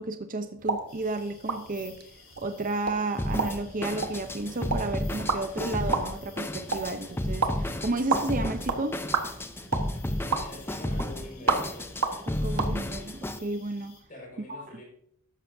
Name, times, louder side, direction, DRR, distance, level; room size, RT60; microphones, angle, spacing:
voice 1, 0.0-2.0 2.4-9.0 12.3-14.0 14.5-14.6, right 2 dB, 35° right, 8 dB, 0.7 m, -32 dB
sound 1, 0.6-12.7, right 4 dB, 75° right, 1.3 m, -33 dB
sound 2, 0.9-14.0, left 6 dB, 70° left, 3.2 m, -54 dB
Drum kit, 3.2-13.4, left 1 dB, 10° left, 0.6 m, -33 dB
voice 2, 10.2-11.6 14.1-14.8, left 1 dB, 40° left, -1 dB, 4.8 m, -44 dB
13.5 x 11.0 x 2.7 m, 0.71 s
head